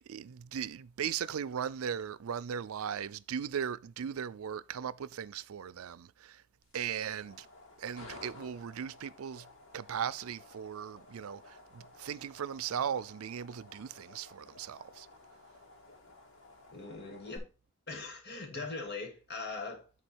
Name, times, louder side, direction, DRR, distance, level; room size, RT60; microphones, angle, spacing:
voice 1, 0.1-6.4 6.7-7.5 7.8-9.5 9.7-15.1, right 8 dB, 85° right, 0.4 m, -38 dB
sound 1, 6.6-17.4, left 2 dB, 75° left, 2.8 m, -54 dB
voice 2, 16.7-17.4 17.9-20.0, left 3 dB, 55° left, 2.3 m, -41 dB
10.0 x 4.0 x 4.5 m
head